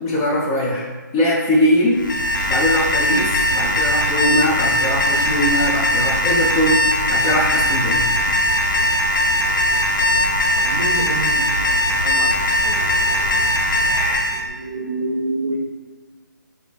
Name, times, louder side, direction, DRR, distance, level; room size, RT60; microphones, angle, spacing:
voice 1, 0.0-0.9 1.1-2.0 2.5-8.1 12.0-12.1 13.9-14.2, equal, 15° left, -3 dB, 0.3 m, -21 dB
Alarm, 2.0-14.4, left 1 dB, 80° left, 0.5 m, -19 dB
voice 2, 10.6-12.8 14.3-15.6, right 2 dB, 75° right, 3 dB, 0.5 m, -28 dB
4.6 x 2.4 x 2.3 m, 1.4 s
figure-of-eight pair, 155°, 10 cm